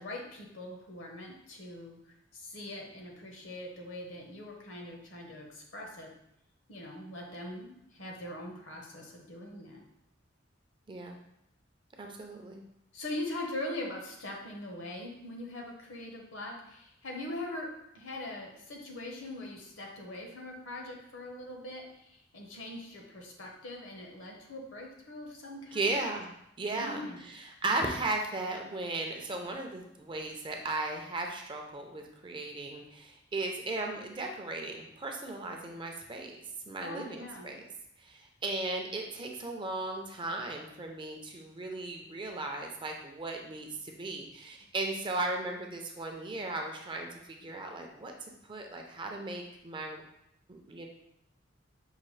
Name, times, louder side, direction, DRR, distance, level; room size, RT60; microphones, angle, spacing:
voice 1, 0.0-2.0 2.3-6.1 6.7-9.8 12.9-17.7 17.9-26.0 26.7-27.2 36.8-37.5, left 1 dB, 70° left, 0 dB, 0.9 m, -42 dB
voice 2, 12.0-12.6 25.7-26.3 26.6-36.4 36.7-37.6 38.0-50.0 50.5-50.9, right 2 dB, 25° right, 2 dB, 0.4 m, -36 dB
5.5 x 2.3 x 3.1 m, 0.79 s
head